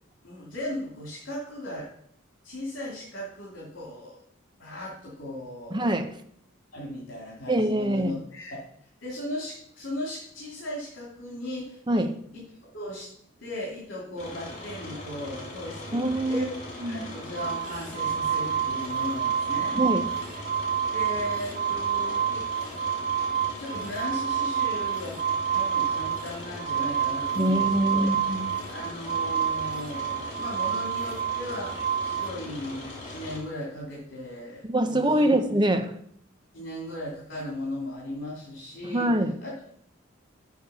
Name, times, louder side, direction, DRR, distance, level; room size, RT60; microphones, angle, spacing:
voice 1, 0.2-1.9 2.4-4.1 4.6-5.8 6.7-8.6 9.0-12.1 12.3-13.1 13.4-16.6 16.8-19.8 20.9-22.5 23.6-25.2 25.5-28.1 28.7-35.4 36.5-39.1 39.4-39.7, left 1 dB, 65° left, 2.7 m, -37 dB
voice 2, 5.7-6.1 7.5-8.2 11.9-12.1 15.9-16.5 16.8-17.0 19.7-20.1 27.4-28.5 34.7-36.0 38.8-39.4, right 1 dB, 20° right, 0.7 m, -24 dB
sound 1, 14.2-33.4, left 1 dB, 35° left, 2.5 m, -40 dB
sound 2, 17.4-32.3, right 8 dB, 50° right, 0.9 m, -28 dB
6.9 x 6.5 x 6.6 m
head